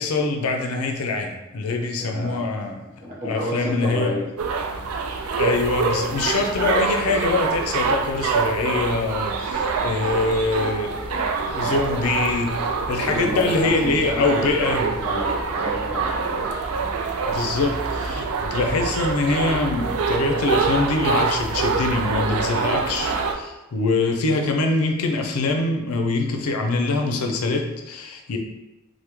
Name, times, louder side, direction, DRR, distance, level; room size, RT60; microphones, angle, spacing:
voice 1, 0.0-2.9 3.2-4.2 5.4-14.9 17.3-28.4, left 3 dB, 90° left, 3 dB, 0.5 m, -24 dB
voice 2, 2.0-2.4 3.0-4.3 13.0-16.4 17.2-17.4, equal, 35° right, -5 dB, 0.8 m, -30 dB
sound 1, 4.4-23.3, right 4 dB, 80° right, 0.4 m, -25 dB
3.3 x 2.1 x 3.0 m, 0.98 s
head